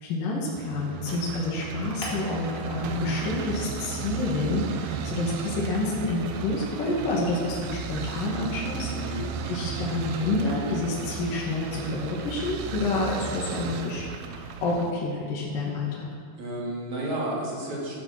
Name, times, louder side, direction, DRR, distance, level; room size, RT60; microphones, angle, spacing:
voice 1, 0.0-16.1, left 2 dB, 55° left, -5 dB, 3.5 m, -29 dB
sound 1, 0.6-14.9, right 6 dB, 75° right, 2.8 m, -34 dB
sound 2, 2.0-3.7 4.0-6.4, left 1 dB, 15° left, 4.0 m, -44 dB
voice 2, 8.9-9.3 16.4-18.0, right 1 dB, 45° right, -4 dB, 3.7 m, -31 dB
16.0 x 13.0 x 6.0 m, 2.1 s
omnidirectional pair, 4.8 m